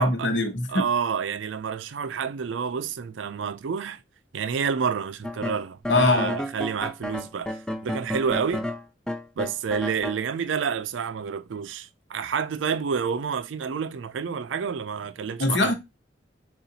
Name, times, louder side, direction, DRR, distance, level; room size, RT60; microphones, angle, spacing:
voice 1, 0.0-0.9 5.9-6.4 15.4-15.7, left 2 dB, 70° left, 0.9 m, -22 dB
voice 2, 0.7-4.0 4.3-8.7 9.4-15.7, right 6 dB, 85° right, 0.4 m, -29 dB
sound 1, 5.2-10.2, left 1 dB, 5° left, 0.3 m, -32 dB
6.7 x 2.4 x 2.8 m
head